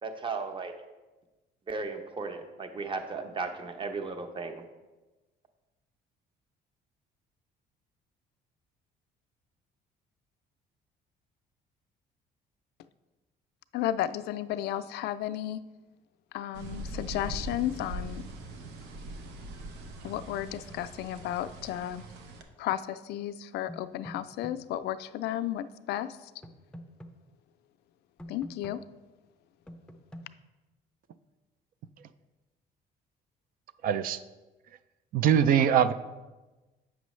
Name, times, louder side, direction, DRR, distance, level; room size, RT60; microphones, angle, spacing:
voice 1, 0.0-0.7 1.7-4.6, right 4 dB, 30° right, 7 dB, 0.8 m, -35 dB
voice 2, 13.7-15.6 16.3-18.3 20.0-22.0 22.6-26.3 28.3-28.8, left 12 dB, 75° left, 13 dB, 0.4 m, -33 dB
sound 1, 16.5-22.4, right 1 dB, 85° right, 0.8 m, -41 dB
sound 2, 23.7-24.6 26.4-27.1 28.2-28.8 29.7-30.3, equal, 5° left, 0.5 m, -44 dB
voice 3, 33.8-34.2 35.1-35.9, right 8 dB, 55° right, 13 dB, 0.4 m, -22 dB
8.1 x 6.1 x 3.1 m, 1.1 s
cardioid pair, 110°, 17 cm